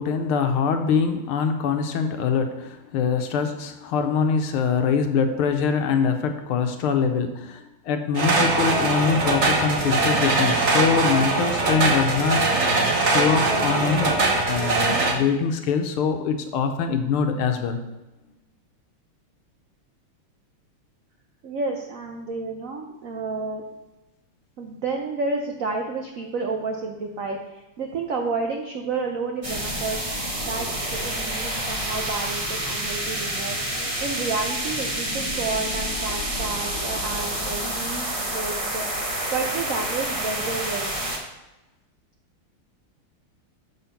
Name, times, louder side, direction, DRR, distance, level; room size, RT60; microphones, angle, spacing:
voice 1, 0.0-12.5 13.0-14.2 14.5-17.8, left 6 dB, 80° left, 6 dB, 1.6 m, -23 dB
sound 1, 8.2-15.1, right 3 dB, 45° right, 0.9 m, -21 dB
voice 2, 21.4-23.6 24.6-30.0 30.5-38.9 39.3-41.0, right 3 dB, 70° right, 2 dB, 0.7 m, -30 dB
sound 2, 29.4-41.2, right 1 dB, 25° right, 0.8 m, -28 dB
7.1 x 5.4 x 5.7 m, 1.0 s
omnidirectional pair, 2.4 m